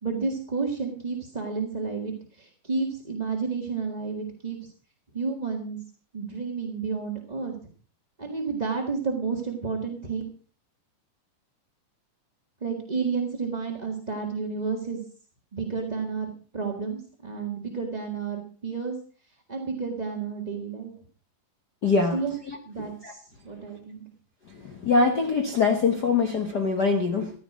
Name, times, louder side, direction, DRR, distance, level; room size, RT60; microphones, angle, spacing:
voice 1, 0.0-4.7 5.1-5.8 6.1-7.6 8.2-10.2 12.6-15.0 15.5-18.9 19.5-20.9 22.1-22.3 22.6-24.0, right 4 dB, 25° right, 1 dB, 0.9 m, -31 dB
voice 2, 21.8-22.2 23.0-23.1 24.6-27.3, left 4 dB, 70° left, 4 dB, 0.9 m, -23 dB
14.5 x 12.0 x 4.9 m, 0.40 s
omnidirectional pair, 3.8 m